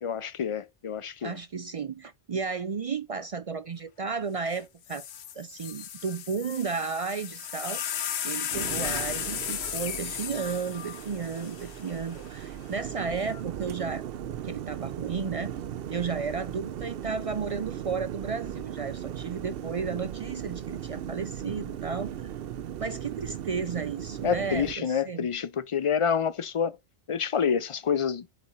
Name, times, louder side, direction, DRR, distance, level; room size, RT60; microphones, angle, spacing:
voice 1, 0.0-1.4 24.2-26.8 27.1-28.3, left 7 dB, 40° left, 0.5 m, -28 dB
voice 2, 1.2-5.0 5.4-7.8 8.2-14.0 14.4-15.5 15.9-22.3 22.8-25.3, right 5 dB, 50° right, 0.4 m, -33 dB
sound 1, 4.5-4.6 4.9-12.3 13.2-13.6, left 9 dB, 85° left, 1.0 m, -35 dB
sound 2, 8.5-24.8, right 10 dB, 70° right, 0.8 m, -37 dB
8.2 x 4.2 x 4.0 m
omnidirectional pair, 1.1 m